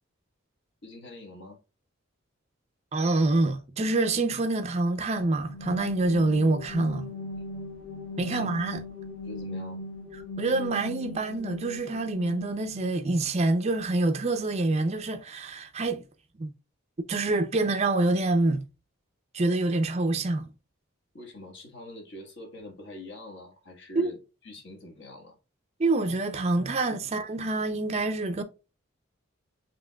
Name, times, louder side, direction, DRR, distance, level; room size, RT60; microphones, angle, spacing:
voice 1, 0.8-1.6 8.2-8.5 9.2-9.8 21.1-24.2 24.4-25.4 27.0-27.1, left 1 dB, 55° left, 1.3 m, -44 dB
voice 2, 2.9-7.1 8.2-8.8 10.1-16.1 16.3-16.5 17.1-18.7 19.3-20.5 24.0-24.1 25.8-28.4, right 2 dB, 30° right, 0.4 m, -26 dB
sound 1, 5.2-13.0, left 2 dB, 85° left, 1.0 m, -39 dB
7.2 x 3.0 x 2.2 m
head